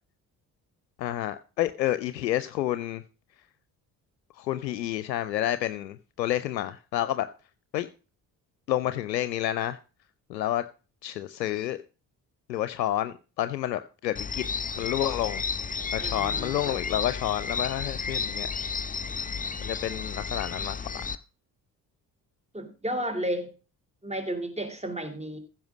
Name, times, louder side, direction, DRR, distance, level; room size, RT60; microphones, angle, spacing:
voice 1, 1.0-3.0 4.4-7.3 7.7-7.9 8.7-9.8 10.3-10.6 11.0-11.8 12.5-14.4 14.8-18.5 19.6-21.0, left 13 dB, 85° left, 0.6 m, -29 dB
sound 1, 14.2-21.2, left 5 dB, 15° left, 0.7 m, -32 dB
voice 2, 16.0-16.9 22.5-23.5 24.0-25.4, right 1 dB, 15° right, 3.3 m, -33 dB
15.0 x 5.7 x 6.2 m
figure-of-eight pair, 40°, 50 cm